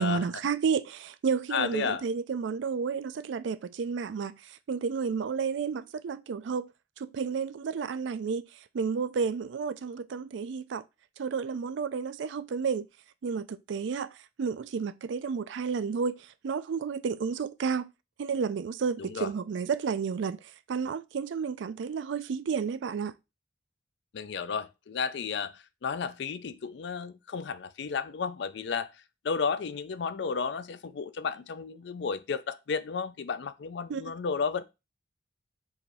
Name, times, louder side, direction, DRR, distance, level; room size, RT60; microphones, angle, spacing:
voice 1, 0.0-4.4 4.7-6.7 7.0-8.5 8.7-10.8 11.2-12.9 13.2-14.1 14.4-16.2 16.4-17.9 18.2-20.4 20.7-23.1 33.9-34.0, right 6 dB, 75° right, 0.4 m, -31 dB
voice 2, 1.5-2.0 19.0-19.3 24.1-25.5 25.8-28.9 29.2-34.6, left 5 dB, 65° left, 0.4 m, -32 dB
4.7 x 2.6 x 4.1 m
head